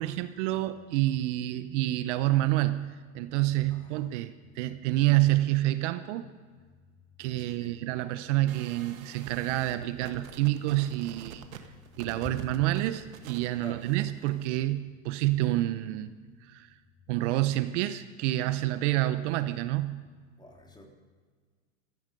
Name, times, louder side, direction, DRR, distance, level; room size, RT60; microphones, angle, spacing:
voice 1, 0.0-6.3 7.2-11.4 12.0-16.1 16.4-16.7 17.1-20.0, right 16 dB, 60° right, 12 dB, 0.9 m, -28 dB
voice 2, 7.4-7.8 12.2-12.3 13.6-13.9 20.4-20.9, left 2 dB, 10° left, 1 dB, 3.1 m, -46 dB
sound 1, 8.5-14.6, right 8 dB, 85° right, 1.6 m, -47 dB
16.0 x 14.5 x 5.3 m, 1.6 s
hypercardioid pair, 115°, 40 cm